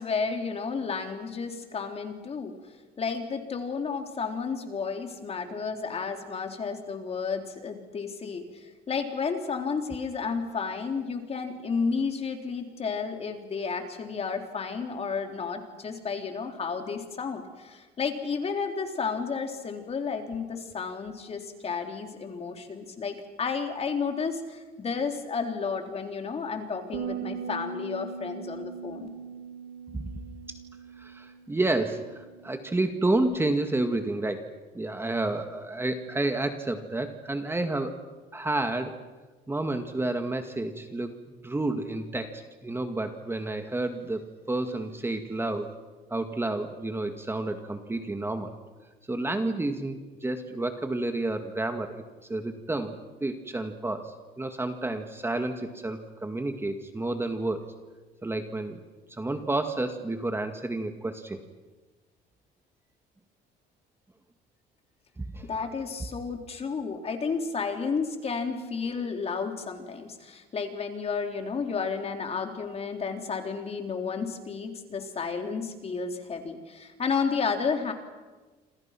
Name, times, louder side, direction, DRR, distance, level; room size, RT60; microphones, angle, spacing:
voice 1, 0.0-2.5 3.0-29.1 65.5-77.9, left 5 dB, 35° left, 4 dB, 3.8 m, -32 dB
sound 1, 26.9-33.2, right 6 dB, 75° right, 2.5 m, -40 dB
voice 2, 31.0-34.5 34.7-37.9 38.3-39.0 39.5-41.2 41.4-45.7 46.1-48.5 49.1-52.0 52.3-57.7 58.2-58.8 59.1-61.4 65.2-65.5, right 2 dB, 15° right, 6 dB, 2.0 m, -30 dB
28.5 x 27.5 x 6.0 m, 1.2 s
cardioid pair, 110°, 17 cm